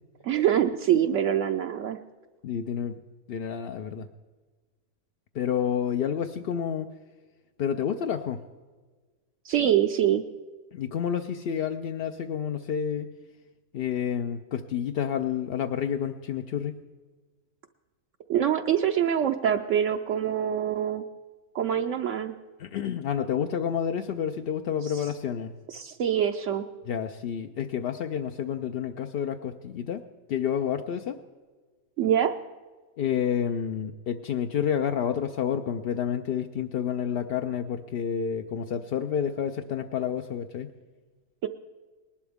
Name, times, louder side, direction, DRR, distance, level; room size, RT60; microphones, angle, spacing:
voice 1, 0.2-2.0 9.4-10.2 18.3-21.0 21.5-22.3 24.9-25.0 25.7-26.7 32.0-32.3 41.4-41.5, right 9 dB, 70° right, 5 dB, 0.8 m, -25 dB
voice 2, 2.4-3.0 3.3-4.1 5.3-6.9 7.6-8.4 10.7-13.1 13.7-16.8 22.6-25.5 26.9-30.0 30.3-31.2 33.0-40.7, left 8 dB, 65° left, 6 dB, 0.6 m, -29 dB
19.5 x 11.5 x 3.5 m, 1.4 s
omnidirectional pair, 1.5 m